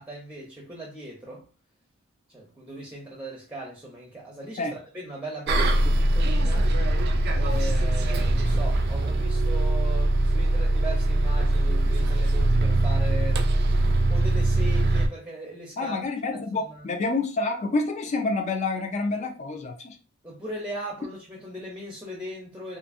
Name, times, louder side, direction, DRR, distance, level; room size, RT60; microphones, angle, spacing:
voice 1, 0.0-1.4 2.3-6.7 7.3-13.4 14.1-16.0 16.3-16.4 16.7-16.9 20.2-22.8, right 1 dB, 5° right, 0.6 m, -38 dB
Bus, 5.5-15.1, right 1 dB, 50° right, 0.3 m, -22 dB
voice 2, 15.8-20.0, left 3 dB, 35° left, 0.3 m, -28 dB
2.5 x 2.5 x 2.5 m
head